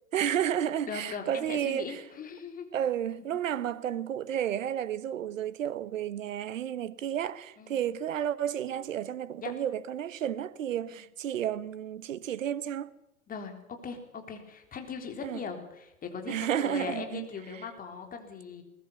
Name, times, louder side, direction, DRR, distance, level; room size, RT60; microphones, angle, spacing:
voice 1, 0.1-2.0 2.7-12.9 15.2-15.4 16.3-17.3, right 10 dB, 65° right, 1.3 m, -32 dB
voice 2, 0.9-2.7 3.5-3.6 7.6-7.8 9.4-9.5 10.9-11.0 13.3-18.6, left 5 dB, 20° left, 3.8 m, -39 dB
21.0 x 19.5 x 6.9 m
figure-of-eight pair, 105°, 42 cm